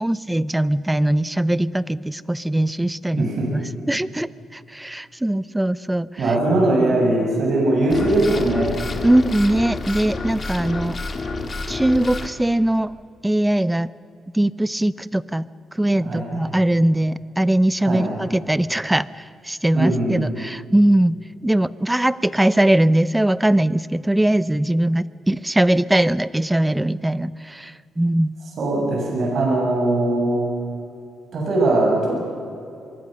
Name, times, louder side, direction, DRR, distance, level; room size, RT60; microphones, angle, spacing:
voice 1, 0.0-3.6 3.9-6.1 9.0-11.0 11.7-12.9 13.2-13.9 14.3-15.5 15.7-21.1 21.4-28.3, right 1 dB, 10° right, 17 dB, 0.6 m, -20 dB
voice 2, 3.1-3.5 6.2-8.7 16.0-16.4 17.9-18.1 19.7-20.2 28.6-30.5 31.3-32.1, right 2 dB, 55° right, -2 dB, 7.7 m, -20 dB
sound 1, 7.9-12.3, left 3 dB, 35° left, 2.2 m, -29 dB
24.5 x 23.5 x 6.7 m, 2.5 s
cardioid pair, 120°, 0 cm